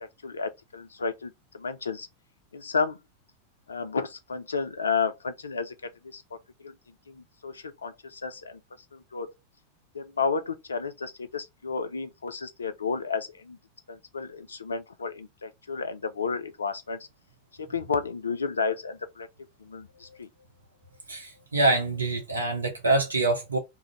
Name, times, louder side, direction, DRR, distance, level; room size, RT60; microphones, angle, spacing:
voice 1, 0.0-2.1 2.5-3.0 3.7-6.4 6.6-6.7 7.1-8.6 8.9-9.3 9.9-13.6 13.9-17.0 17.6-19.3 19.6-20.3, left 5 dB, 75° left, 0.3 m, -32 dB
voice 2, 21.1-23.6, right 2 dB, 75° right, 0.7 m, -25 dB
2.5 x 2.0 x 3.0 m
figure-of-eight pair, 90°, 0 cm